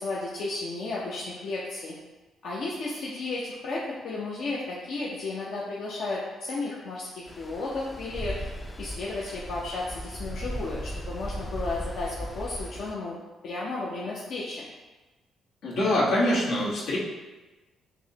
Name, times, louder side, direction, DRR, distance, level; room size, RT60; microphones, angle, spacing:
voice 1, 0.0-1.9 2.4-13.2 13.4-14.7, left 3 dB, 65° left, -6 dB, 0.6 m, -33 dB
Stream, 7.3-12.9, equal, 20° left, 0.4 m, -37 dB
voice 2, 15.6-17.0, left 1 dB, 85° left, -6 dB, 1.1 m, -24 dB
6.0 x 2.1 x 2.8 m, 1.2 s
cardioid pair, 90°, 0 cm